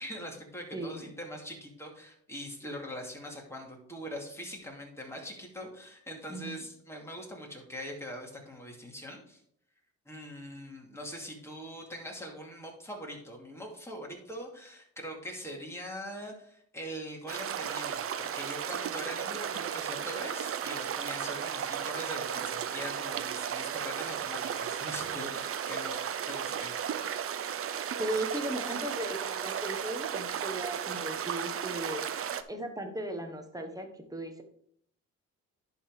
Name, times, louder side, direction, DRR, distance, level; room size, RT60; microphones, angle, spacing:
voice 1, 0.0-9.4 10.1-26.0 26.3-27.3, equal, 10° left, 0 dB, 2.4 m, -42 dB
voice 2, 0.7-1.1 6.3-6.5 28.0-32.0 32.5-34.4, right 1 dB, 10° right, 5 dB, 1.3 m, -37 dB
sound 1, 17.3-32.4, right 8 dB, 50° right, 0.6 m, -35 dB
11.0 x 3.9 x 4.8 m, 0.68 s
cardioid pair, 90°, 30 cm